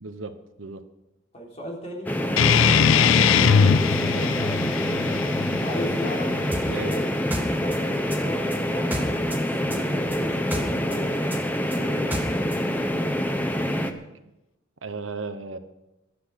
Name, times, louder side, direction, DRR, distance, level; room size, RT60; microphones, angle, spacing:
voice 1, 0.0-0.9 6.6-7.0 14.8-15.6, right 3 dB, 70° right, 10 dB, 1.1 m, -35 dB
voice 2, 1.3-3.3 3.8-4.8 5.5-6.3 6.6-9.0 9.4-12.6, left 1 dB, 30° left, -2 dB, 3.7 m, -37 dB
sound 1, 2.1-13.9, equal, 10° left, 0.9 m, -26 dB
sound 2, 2.4-7.4, left 7 dB, 75° left, 0.5 m, -21 dB
sound 3, 6.5-9.4 9.7-12.6, right 1 dB, 10° right, 1.9 m, -33 dB
14.5 x 12.0 x 5.9 m, 0.94 s
head